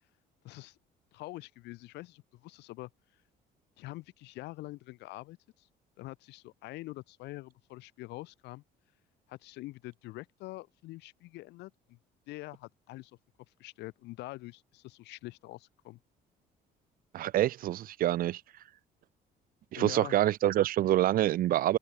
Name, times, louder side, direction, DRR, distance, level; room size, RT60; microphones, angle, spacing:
voice 1, 0.4-0.8 1.1-2.9 3.8-5.7 6.0-8.6 9.3-12.0 12.3-13.2 13.6-16.0 19.8-20.2, left 19 dB, 85° left, 4.4 m, -45 dB
voice 2, 17.1-18.4 19.7-21.8, right 13 dB, 60° right, 0.6 m, -26 dB
cardioid pair, 110°, 17 cm